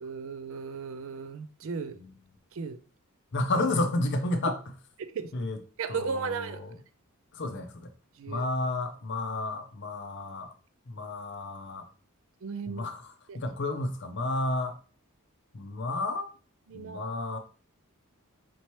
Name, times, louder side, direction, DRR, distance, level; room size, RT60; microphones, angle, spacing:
voice 1, 0.0-2.0 2.5-2.8 5.0-5.3 5.8-6.6 8.2-8.5 12.4-12.9 13.3-13.4 16.7-17.1, right 5 dB, 65° right, 0.4 m, -35 dB
voice 2, 3.3-4.6 5.3-5.6 5.9-6.8 7.3-7.9 8.3-10.5 10.9-11.9 12.7-14.8 15.5-16.3 16.7-17.4, left 2 dB, 55° left, 0.6 m, -31 dB
4.4 x 2.9 x 3.0 m
head